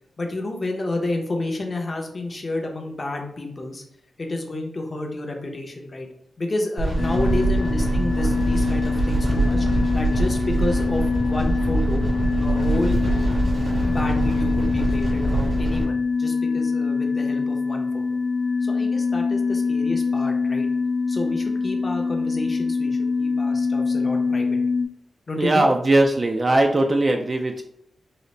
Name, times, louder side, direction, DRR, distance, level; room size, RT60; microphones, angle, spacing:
voice 1, 0.2-3.8 4.2-6.1 6.4-12.0 12.4-13.0 13.9-18.0 18.6-20.7 21.1-24.6 25.3-25.7, left 2 dB, 35° left, 2 dB, 0.7 m, -30 dB
sound 1, 6.8-15.8, right 2 dB, 80° right, 1.5 m, -23 dB
sound 2, 7.0-24.8, left 4 dB, 65° left, 0.4 m, -24 dB
voice 2, 25.4-27.6, right 2 dB, 35° right, 3 dB, 0.3 m, -19 dB
3.9 x 2.0 x 3.2 m, 0.74 s
wide cardioid pair, 100°, 0 cm